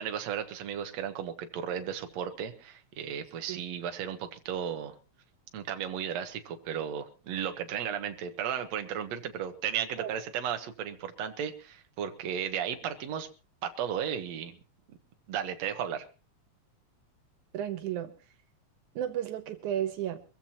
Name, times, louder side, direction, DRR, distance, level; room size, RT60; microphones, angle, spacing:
voice 1, 0.0-5.0 5.5-13.3 13.6-14.6 15.3-16.0, right 8 dB, 65° right, 7 dB, 2.4 m, -34 dB
voice 2, 17.5-18.1 19.0-20.2, right 10 dB, 85° right, 9 dB, 2.4 m, -33 dB
23.5 x 15.0 x 2.9 m, 0.32 s
omnidirectional pair, 3.4 m